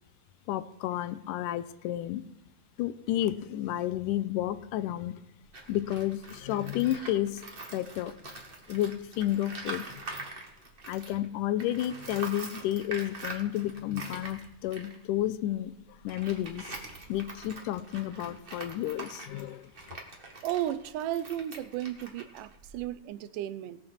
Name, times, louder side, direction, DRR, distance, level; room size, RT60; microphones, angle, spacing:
voice 1, 0.5-2.2 2.8-5.2 5.7-7.4 7.7-8.1 8.7-10.3 10.9-15.7 16.0-16.7 17.1-20.0, left 13 dB, 85° left, 13 dB, 2.1 m, -31 dB
Tools, 5.4-11.2 11.6-23.0, right 2 dB, 40° right, 0.7 m, -44 dB
voice 2, 20.4-23.8, right 12 dB, 80° right, 14 dB, 2.1 m, -34 dB
17.5 x 5.9 x 6.5 m, 0.90 s
omnidirectional pair, 3.8 m